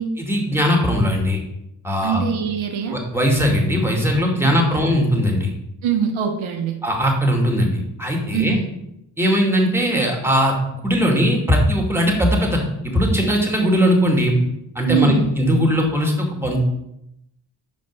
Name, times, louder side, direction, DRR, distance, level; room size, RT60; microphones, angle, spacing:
voice 1, 0.2-1.4 1.8-2.2 2.9-5.5 6.8-7.7 8.0-8.5 9.2-10.5 10.8-14.3 14.8-16.6, equal, 5° right, 1 dB, 2.3 m, -19 dB
voice 2, 2.0-3.0 4.4-4.8 5.8-6.8 8.3-8.7 14.9-15.3, right 7 dB, 80° right, 4 dB, 0.9 m, -23 dB
5.3 x 5.2 x 5.4 m, 0.82 s
supercardioid pair, 45°, 47 cm